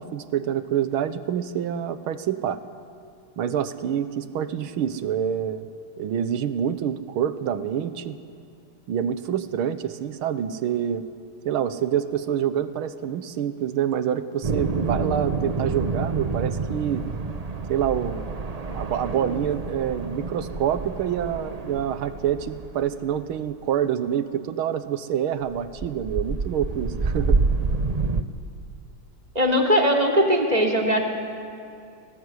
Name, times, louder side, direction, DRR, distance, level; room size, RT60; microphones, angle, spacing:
voice 1, 0.0-2.6 3.4-5.7 6.0-8.2 8.9-11.0 11.5-17.1 17.7-18.2 18.7-27.4, right 9 dB, 80° right, 12 dB, 1.9 m, -27 dB
sound 1, 14.4-23.2 25.5-28.2, right 4 dB, 55° right, 0.4 m, -28 dB
voice 2, 29.3-31.1, equal, 20° right, 3 dB, 3.2 m, -20 dB
27.5 x 19.5 x 9.7 m, 2.6 s
omnidirectional pair, 2.3 m